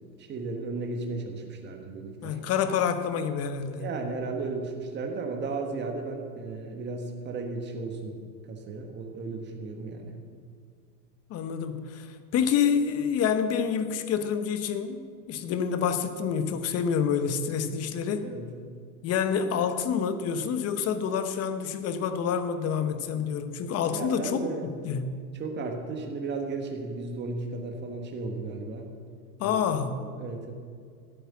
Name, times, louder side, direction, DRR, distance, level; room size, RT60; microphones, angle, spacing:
voice 1, 0.0-2.4 3.8-10.2 18.2-18.5 23.9-24.7 25.4-28.9 29.4-29.6 30.0-30.5, right 3 dB, 20° right, 3 dB, 1.5 m, -35 dB
voice 2, 2.2-3.9 11.3-18.3 19.0-24.5 24.8-25.2 29.4-30.0, left 7 dB, 30° left, 10 dB, 0.9 m, -28 dB
12.0 x 8.0 x 7.4 m, 2.1 s
hypercardioid pair, 115°, 49 cm